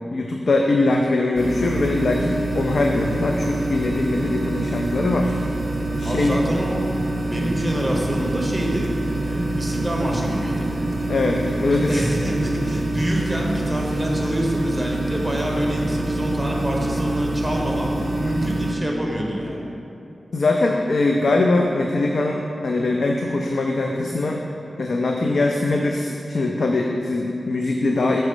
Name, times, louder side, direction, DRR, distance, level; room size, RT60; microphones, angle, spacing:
voice 1, 0.1-5.4 6.0-6.4 11.1-12.1 20.3-24.4 24.8-28.2, left 2 dB, 65° left, 1 dB, 0.4 m, -22 dB
sound 1, 1.4-18.7, right 2 dB, 50° right, 0.6 m, -26 dB
voice 2, 6.0-6.8 7.1-8.9 9.2-10.7 11.8-19.6, equal, 5° right, -2 dB, 1.1 m, -26 dB
6.2 x 4.2 x 5.0 m, 2.7 s
wide cardioid pair, 115°, 0 cm